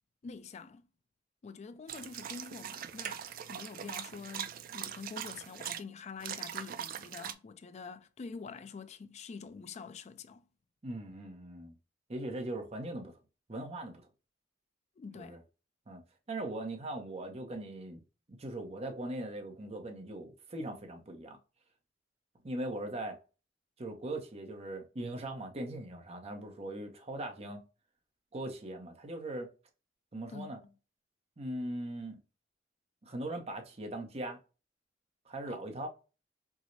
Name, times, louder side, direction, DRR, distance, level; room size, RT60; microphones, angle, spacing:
voice 1, 0.2-0.9 1.4-10.4 15.0-15.4 30.3-30.6 35.5-35.6, left 5 dB, 40° left, 0.3 m, -46 dB
sound 1, 1.9-5.8 6.2-7.3, right 9 dB, 50° right, 0.3 m, -41 dB
voice 2, 10.8-11.7 12.1-13.1 13.5-13.9 15.1-15.4 15.9-16.0 16.3-18.0 18.3-21.4 22.4-23.2 23.8-27.6 28.3-29.5 30.1-30.6 31.4-32.2 33.0-34.4 35.3-35.9, right 1 dB, 35° right, 0.7 m, -40 dB
4.7 x 2.0 x 2.6 m
head